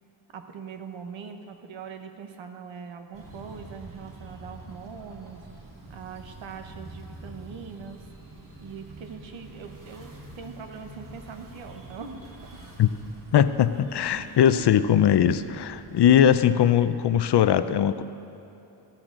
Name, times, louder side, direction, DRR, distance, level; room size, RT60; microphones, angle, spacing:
voice 1, 0.3-5.4 5.9-8.1 8.6-12.2 12.5-12.6 14.2-14.5, right 6 dB, 90° right, 5 dB, 1.1 m, -42 dB
sound 1, 3.1-16.2, right 2 dB, 45° right, 2.2 m, -46 dB
voice 2, 13.3-18.0, left 9 dB, 60° left, 13 dB, 0.6 m, -20 dB
14.0 x 13.5 x 3.8 m, 2.8 s
cardioid pair, 90°, 45 cm